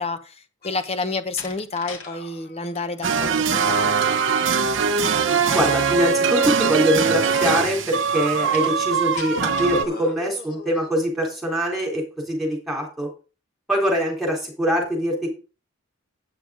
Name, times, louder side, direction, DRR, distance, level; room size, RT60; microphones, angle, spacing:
voice 1, 0.0-4.2, left 3 dB, 30° left, 0.9 m, -30 dB
sound 1, 0.6-1.1 2.0-2.9 4.0-4.9 5.7-6.6 7.0-8.8 9.6-11.1 12.2-12.4, left 2 dB, 45° left, 1.6 m, -41 dB
Slam, 1.0-2.1 2.4-2.9 8.5-9.9, left 5 dB, 70° left, 2.1 m, -40 dB
sound 2, 3.0-9.9, right 6 dB, 65° right, 0.9 m, -21 dB
voice 2, 5.5-13.1 13.7-15.3, equal, ahead, 3.7 m, -23 dB
8.8 x 7.1 x 5.0 m
head